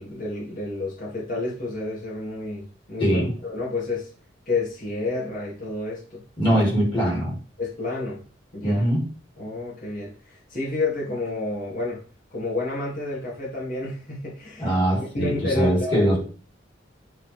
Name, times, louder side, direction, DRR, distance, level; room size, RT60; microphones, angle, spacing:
voice 1, 0.0-4.1 4.5-6.2 7.6-8.2 8.5-8.8 9.4-12.0 12.3-16.1, left 2 dB, 50° left, -6 dB, 2.8 m, -30 dB
voice 2, 3.0-3.3 6.4-7.3 8.6-9.1 14.6-16.2, equal, 25° left, -4 dB, 3.5 m, -22 dB
8.9 x 4.1 x 3.6 m, 0.38 s
head